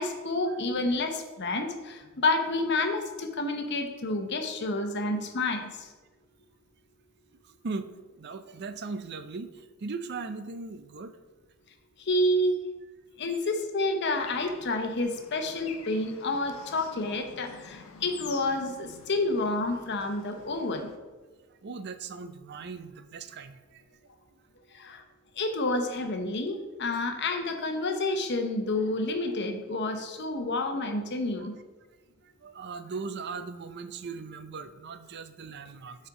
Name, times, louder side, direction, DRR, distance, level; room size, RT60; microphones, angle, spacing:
voice 1, 0.0-5.9 12.0-12.5 13.2-20.9 24.7-25.0 25.4-31.5, left 2 dB, 55° left, 6 dB, 0.9 m, -29 dB
voice 2, 7.4-7.9 8.2-11.2 21.6-23.8 31.4-31.5 32.2-36.1, right 4 dB, 50° right, 11 dB, 0.5 m, -39 dB
Bird / Traffic noise roadway noise, 14.2-21.0, left 5 dB, 85° left, 0.8 m, -48 dB
8.9 x 4.4 x 4.8 m, 1.3 s
head